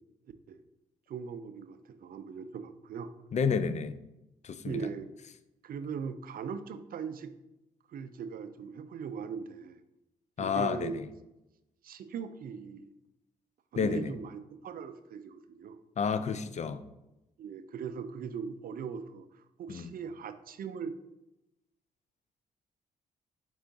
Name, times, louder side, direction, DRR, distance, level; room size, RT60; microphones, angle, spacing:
voice 1, 1.1-3.1 4.6-5.1 5.6-7.3 7.9-9.8 10.4-11.0 11.8-12.9 13.7-15.8 17.4-20.9, right 6 dB, 50° right, 10 dB, 0.4 m, -40 dB
voice 2, 3.3-4.0 4.4-4.9 10.4-11.1 13.8-14.1 16.0-16.8 19.7-19.9, left 6 dB, 40° left, 12 dB, 0.4 m, -30 dB
4.5 x 2.4 x 3.9 m, 0.93 s
supercardioid pair, 50°, 19 cm